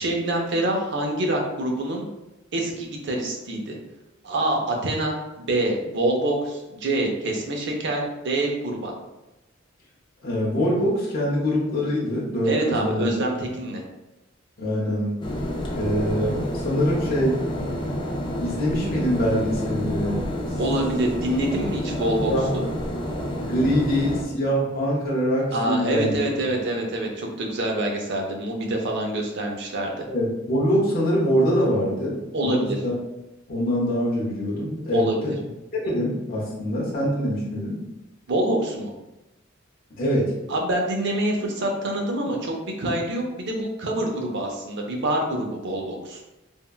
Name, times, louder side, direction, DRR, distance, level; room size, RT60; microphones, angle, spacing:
voice 1, 0.0-2.1 2.5-3.8 4.2-8.9 12.5-13.8 20.6-22.6 25.5-30.0 32.3-32.8 34.9-35.3 38.3-38.9 40.5-46.2, right 1 dB, 60° right, 1 dB, 0.6 m, -26 dB
voice 2, 10.2-13.1 14.6-15.3 15.7-17.4 18.4-20.2 22.3-22.6 23.3-26.2 30.1-32.9 33.5-35.3 35.8-37.8 40.0-40.3, equal, 50° left, -5 dB, 0.7 m, -24 dB
sound 1, 15.2-24.2, left 1 dB, 25° left, 0.4 m, -29 dB
3.5 x 2.2 x 2.3 m, 0.98 s
head